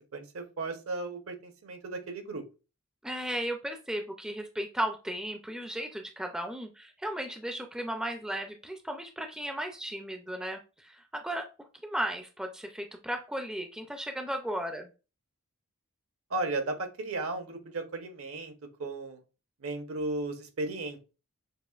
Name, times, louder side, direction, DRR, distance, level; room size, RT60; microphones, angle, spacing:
voice 1, 0.0-2.4 16.3-18.5 18.8-19.2 19.6-21.0, right 2 dB, 70° right, 6 dB, 0.8 m, -35 dB
voice 2, 3.0-11.5 11.8-14.9, right 1 dB, 5° right, 4 dB, 0.4 m, -35 dB
6.5 x 2.5 x 2.4 m, 0.31 s
head